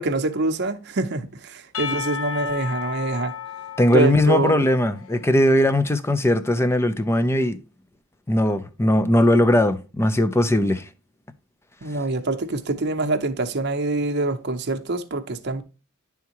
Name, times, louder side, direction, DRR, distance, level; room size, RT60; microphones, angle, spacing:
voice 1, 0.0-3.3 3.9-4.7 11.8-15.6, right 2 dB, 50° right, 0.7 m, -25 dB
Percussion / Church bell, 1.7-5.4, left 7 dB, 70° left, 0.8 m, -33 dB
voice 2, 3.8-7.6 8.3-10.8, left 1 dB, 10° left, 0.5 m, -19 dB
10.5 x 3.5 x 2.9 m
head